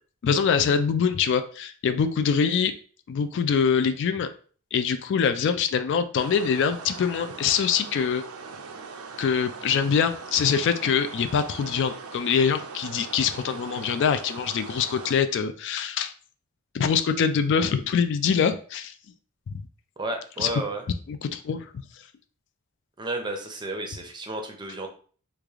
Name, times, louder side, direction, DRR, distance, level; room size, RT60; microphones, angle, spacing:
voice 1, 0.2-2.7 3.1-4.3 4.7-8.2 9.2-16.1 16.7-18.9 19.5-19.6 20.4-20.5 21.1-21.7, left 6 dB, 55° left, 9 dB, 0.3 m, -24 dB
sound 1, 6.1-15.1, right 5 dB, 75° right, 0.5 m, -40 dB
voice 2, 20.0-20.8 23.0-24.9, right 2 dB, 20° right, 3 dB, 0.5 m, -32 dB
3.2 x 2.4 x 3.5 m, 0.42 s
head